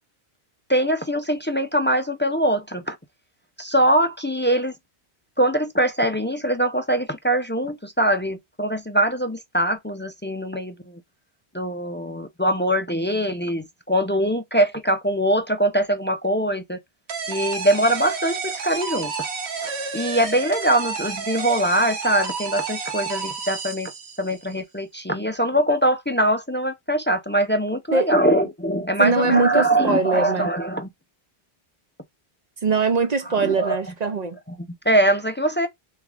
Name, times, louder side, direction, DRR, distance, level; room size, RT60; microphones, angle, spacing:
voice 1, 0.7-3.0 3.6-4.7 5.4-11.0 11.5-16.8 17.3-19.1 19.6-23.9 24.2-30.9 33.3-33.9 34.5-34.6 34.9-35.7, right 1 dB, 20° left, 0.3 m, -22 dB
sound 1, 17.1-24.4, right 5 dB, 85° right, 1.3 m, -30 dB
voice 2, 29.0-30.5 32.6-34.4, right 4 dB, 45° right, 0.6 m, -22 dB
3.6 x 3.2 x 3.4 m
omnidirectional pair, 1.1 m